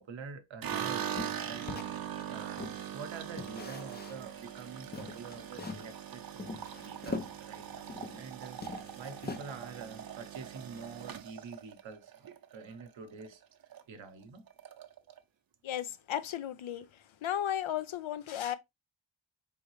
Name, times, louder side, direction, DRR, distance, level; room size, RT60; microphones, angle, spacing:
voice 1, 0.0-6.2 6.5-12.1 12.5-14.4, right 5 dB, 70° right, 1.0 m, -47 dB
sound 1, 0.6-12.9 13.2-13.8 14.1-14.2 14.5-15.2, right 9 dB, 50° right, 0.7 m, -41 dB
sound 2, 1.1-2.9 3.4-4.3 4.6-4.7 4.9-5.9 6.4-8.3 8.6-9.8, left 3 dB, 20° left, 0.5 m, -42 dB
voice 2, 15.6-16.9 17.2-18.6, left 10 dB, 75° left, 0.7 m, -34 dB
4.4 x 3.6 x 3.1 m
wide cardioid pair, 110°, 47 cm